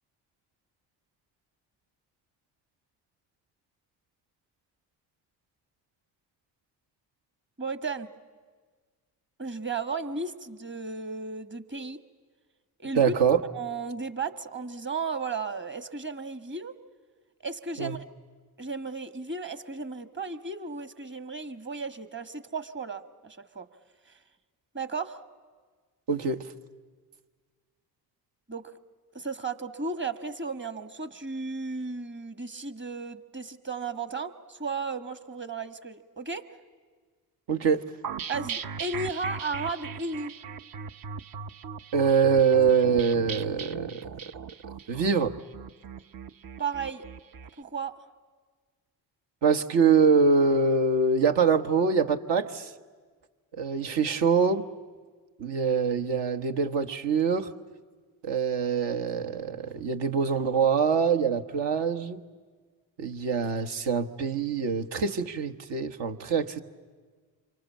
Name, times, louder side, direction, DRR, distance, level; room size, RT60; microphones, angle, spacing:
voice 1, 7.6-8.1 9.4-12.0 12.8-13.1 13.5-16.7 17.4-18.0 18.6-23.7 24.1-24.2 24.7-25.2 28.5-28.7 29.1-36.4 38.3-40.3 46.6-47.0 47.6-47.9, right 4 dB, 25° right, 11 dB, 1.5 m, -34 dB
voice 2, 12.9-13.4 17.8-18.0 26.1-26.4 37.5-37.8 41.9-44.1 44.9-45.3 49.4-52.7 53.6-54.6 55.4-57.5 58.2-62.2 63.0-66.6, right 5 dB, 60° right, 5 dB, 1.4 m, -24 dB
sound 1, 38.0-47.5, right 6 dB, 45° right, 0.9 m, -39 dB
27.5 x 24.5 x 7.4 m, 1.5 s
hypercardioid pair, 50°, 47 cm